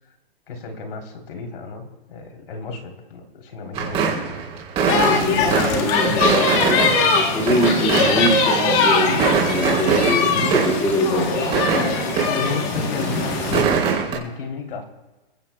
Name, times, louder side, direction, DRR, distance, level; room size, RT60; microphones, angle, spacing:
voice 1, 0.5-4.1 11.9-14.8, left 4 dB, 65° left, 3 dB, 3.3 m, -33 dB
sound 1, 3.7-8.7 9.0-12.6 12.9-14.2, right 6 dB, 20° right, 3.2 m, -23 dB
voice 2, 4.8-11.4, right 1 dB, 10° left, -2 dB, 2.3 m, -24 dB
sound 2, 4.9-13.6, left 4 dB, 25° left, 1.2 m, -21 dB
sound 3, 5.2-6.1 6.4-6.5 7.0-7.5 8.0-8.1, left 5 dB, 45° left, 3.1 m, -33 dB
27.0 x 16.0 x 2.3 m, 1.1 s
hypercardioid pair, 165°, 30 cm